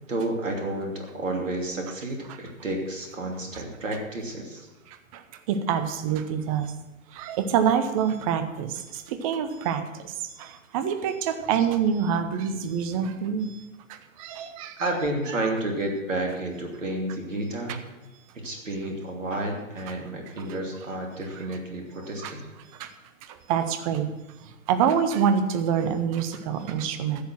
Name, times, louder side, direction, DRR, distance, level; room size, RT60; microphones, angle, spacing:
voice 1, 0.1-4.7 14.8-17.8 18.3-22.4, right 1 dB, 70° right, 1 dB, 2.9 m, -31 dB
voice 2, 4.9-6.7 7.1-14.9 15.4-15.5 17.7-17.8 20.4-20.5 22.2-22.3 22.6-22.9 23.2-24.1 24.4-27.2, right 7 dB, 25° right, 9 dB, 1.0 m, -27 dB
15.5 x 6.9 x 6.2 m, 1.1 s
figure-of-eight pair, 120°, 40 cm